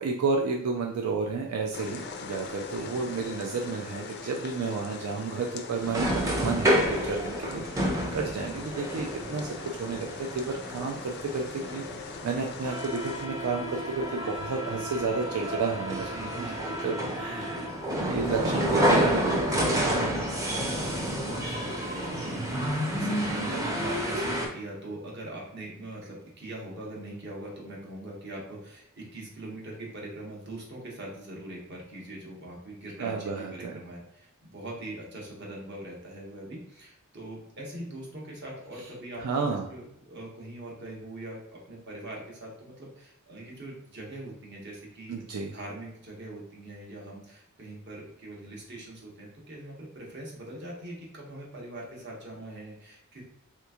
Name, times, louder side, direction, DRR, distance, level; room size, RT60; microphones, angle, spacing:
voice 1, 0.0-11.8 12.2-16.5 16.8-17.6 18.0-20.1 33.0-33.7 39.2-39.7 45.1-45.5, right 4 dB, 85° right, 1 dB, 0.4 m, -32 dB
sound 1, 1.7-13.3, left 5 dB, 50° left, 0.3 m, -41 dB
sound 2, 5.8-24.5, equal, 15° right, 0.5 m, -29 dB
voice 2, 8.4-8.7 16.0-17.7 20.4-39.4 39.7-45.2 45.5-53.2, right 1 dB, 50° right, -2 dB, 1.0 m, -42 dB
3.4 x 3.0 x 2.3 m, 0.78 s
head